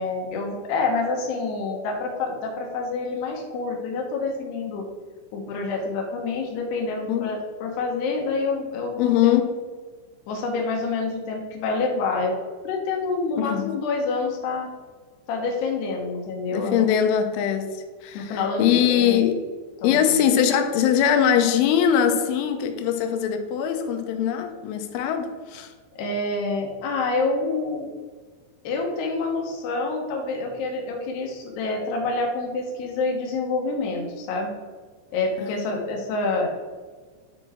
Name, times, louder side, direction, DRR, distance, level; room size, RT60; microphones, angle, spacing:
voice 1, 0.0-4.8 5.3-9.4 10.3-12.4 12.6-14.7 15.3-16.9 18.1-19.2 19.8-20.1 26.0-27.9 28.6-34.5 35.1-36.5, left 3 dB, 70° left, 1 dB, 3.0 m, -27 dB
voice 2, 9.0-9.5 13.4-13.7 16.5-19.4 19.8-25.7 35.4-35.7, left 9 dB, 85° left, 6 dB, 3.1 m, -22 dB
9.9 x 4.5 x 4.3 m, 1.4 s
omnidirectional pair, 5.5 m